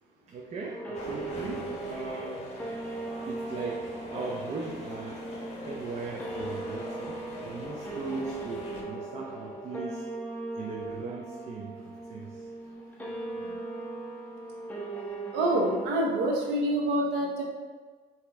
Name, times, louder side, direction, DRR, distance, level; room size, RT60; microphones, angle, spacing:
voice 1, 0.3-2.5 3.3-5.2 5.6-10.1 10.5-12.5 13.0-13.1, right 3 dB, 40° right, -2 dB, 0.6 m, -39 dB
sound 1, 0.7-15.9, right 2 dB, 10° left, 0.8 m, -39 dB
sound 2, 0.9-8.8, left 2 dB, 40° left, 1.2 m, -42 dB
voice 2, 15.3-17.4, right 1 dB, 80° right, -1 dB, 0.9 m, -26 dB
4.9 x 2.9 x 3.4 m, 1.5 s
cardioid pair, 110°, 17 cm